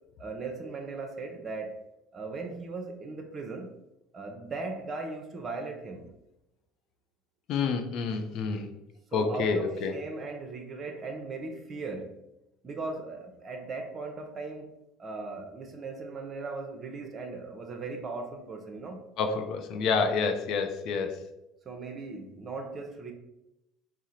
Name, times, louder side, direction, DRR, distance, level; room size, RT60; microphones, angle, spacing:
voice 1, 0.2-1.8 2.1-3.7 4.1-6.1 9.1-12.1 12.6-14.7 15.0-19.0 21.7-23.1, right 3 dB, 35° right, 0.6 m, -38 dB
voice 2, 7.5-8.7 9.1-9.9 19.2-21.2, left 5 dB, 50° left, 0.5 m, -28 dB
4.6 x 2.1 x 4.2 m
figure-of-eight pair, 65°, 0 cm